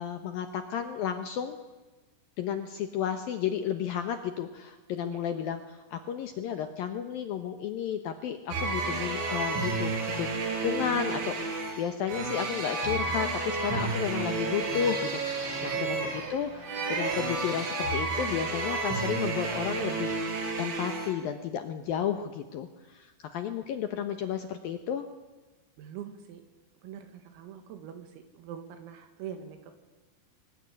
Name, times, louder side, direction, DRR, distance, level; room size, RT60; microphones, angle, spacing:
voice 1, 0.0-1.6 2.4-10.3 10.6-20.2 20.6-25.0, left 8 dB, 85° left, 8 dB, 2.0 m, -32 dB
sound 1, 8.5-21.1, right 3 dB, 65° right, 6.7 m, -31 dB
sound 2, 13.9-18.9, right 1 dB, 30° right, 5.5 m, -50 dB
voice 2, 25.8-26.4 26.8-29.7, right 9 dB, 85° right, 7 dB, 4.6 m, -44 dB
25.0 x 20.0 x 9.9 m, 1.2 s
omnidirectional pair, 6.0 m